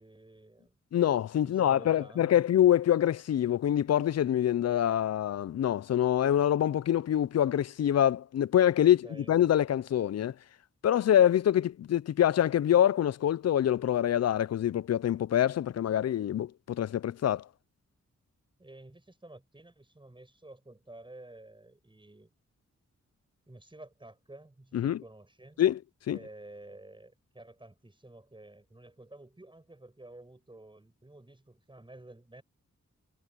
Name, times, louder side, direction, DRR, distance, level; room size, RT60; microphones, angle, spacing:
voice 1, 0.0-0.8 1.4-2.3 9.0-9.3 18.6-22.3 23.5-25.6 26.1-32.4, right 2 dB, 15° right, 6.7 m, -51 dB
voice 2, 0.9-10.3 10.8-17.4 24.7-25.0 25.6-25.8 26.1-26.2, left 10 dB, 60° left, 0.4 m, -25 dB
wide cardioid pair, 110°, 29 cm